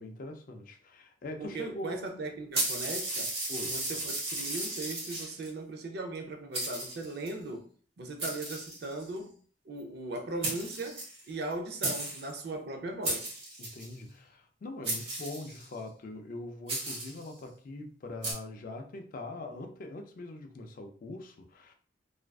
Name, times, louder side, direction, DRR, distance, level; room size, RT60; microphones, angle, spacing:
voice 1, 0.0-2.0 3.5-4.0 13.6-21.7, left 2 dB, 45° left, 0.3 m, -42 dB
voice 2, 1.4-3.3 3.7-9.4 9.7-13.3, right 2 dB, 55° right, 0.4 m, -38 dB
sound 1, 2.5-5.5 6.2-6.3 6.5-7.3 8.2-9.2 10.2-10.3 10.4-11.5 11.8-12.3 13.0-13.9 14.8-15.7 16.7-17.3 18.2-18.3, right 2 dB, 35° right, 0.8 m, -35 dB
2.4 x 2.2 x 2.3 m
head